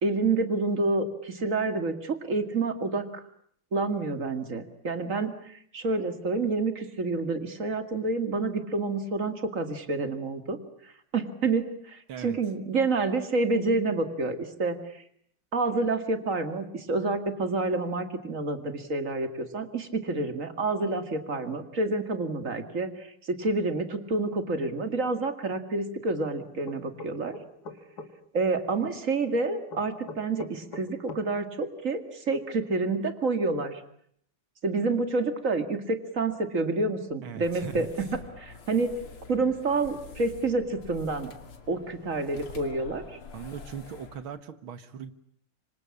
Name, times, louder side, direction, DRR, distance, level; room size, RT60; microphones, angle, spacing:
voice 1, 0.0-3.2 3.7-10.6 10.8-15.0 15.5-27.3 28.3-33.8 34.6-38.9 39.3-41.3 41.7-43.0, right 3 dB, 40° right, 8 dB, 2.5 m, -28 dB
sound 1, 26.7-28.1 29.7-31.2, left 3 dB, 50° left, 2.6 m, -41 dB
voice 2, 37.2-37.9 43.3-45.1, right 8 dB, 75° right, 11 dB, 2.1 m, -39 dB
sound 2, 37.4-44.2, left 4 dB, 90° left, 3.5 m, -46 dB
26.5 x 25.0 x 8.6 m, 0.66 s
omnidirectional pair, 2.3 m